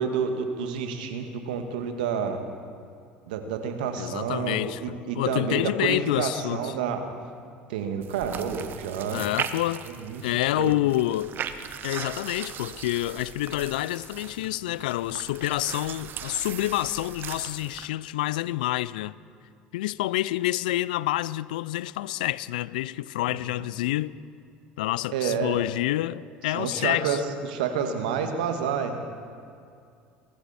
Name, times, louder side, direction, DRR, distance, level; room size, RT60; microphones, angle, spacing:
voice 1, 0.0-2.4 3.3-7.0 7.7-9.3 9.9-10.3 10.6-10.8 23.3-23.4 25.1-25.6 26.5-29.0, right 6 dB, 80° right, 1.6 m, -29 dB
voice 2, 4.0-6.7 9.1-9.8 10.2-11.4 11.8-19.1 19.7-24.2 24.8-27.2, left 16 dB, 80° left, 0.4 m, -28 dB
sound 1, 8.0-17.9, right 8 dB, 50° right, 1.0 m, -38 dB
22.5 x 13.5 x 4.2 m
hypercardioid pair, 70°, 5 cm